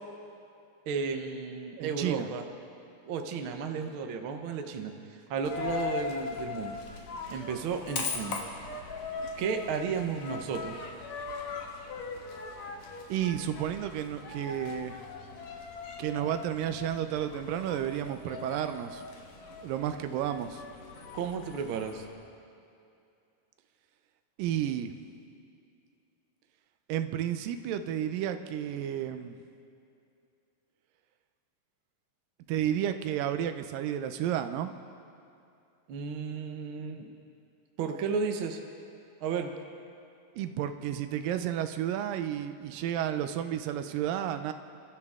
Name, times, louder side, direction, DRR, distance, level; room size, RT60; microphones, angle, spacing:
voice 1, 0.9-2.4 3.0-6.7 7.3-8.4 9.4-10.8 21.1-22.0 35.9-37.1 37.8-38.6 39.2-39.5, right 5 dB, 70° right, 4 dB, 1.2 m, -33 dB
voice 2, 1.8-2.3 13.1-15.0 16.0-19.1 19.6-20.6 24.4-24.9 26.9-29.4 32.5-34.7 40.4-44.5, right 10 dB, 85° right, 9 dB, 2.4 m, -32 dB
Coin (dropping), 5.4-22.1, left 5 dB, 60° left, 2.5 m, -40 dB
29.0 x 13.0 x 3.7 m, 2.6 s
omnidirectional pair, 3.9 m